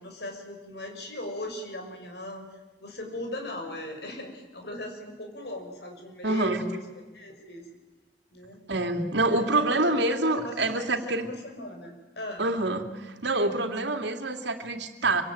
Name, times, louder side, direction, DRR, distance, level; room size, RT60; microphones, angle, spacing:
voice 1, 0.0-2.4 2.8-7.6 8.3-8.6 9.2-12.4, left 1 dB, 65° left, 4 dB, 5.9 m, -39 dB
voice 2, 6.2-6.6 8.7-11.3 12.4-15.2, right 2 dB, 80° right, 6 dB, 2.7 m, -26 dB
26.0 x 25.0 x 9.0 m, 1.2 s
head